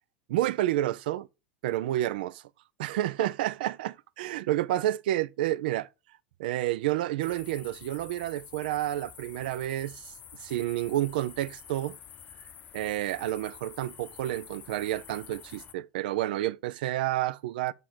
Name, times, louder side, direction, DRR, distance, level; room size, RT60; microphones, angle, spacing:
voice 1, 0.3-1.3 1.6-2.4 2.8-5.9 6.4-10.1 10.4-12.0 12.7-17.7, right 14 dB, 65° right, 0.4 m, -30 dB
sound 1, 7.2-15.7, left 8 dB, 30° left, 0.7 m, -49 dB
7.6 x 3.6 x 5.8 m
figure-of-eight pair, 80°, 5 cm